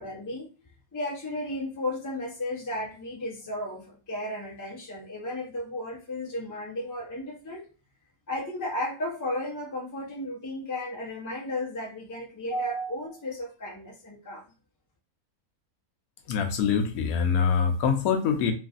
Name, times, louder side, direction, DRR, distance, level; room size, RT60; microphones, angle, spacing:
voice 1, 0.0-7.7 8.3-14.4, left 1 dB, 25° left, -3 dB, 0.4 m, -34 dB
voice 2, 16.3-18.5, left 6 dB, 75° left, 5 dB, 1.0 m, -24 dB
3.0 x 2.5 x 2.4 m, 0.34 s
omnidirectional pair, 1.5 m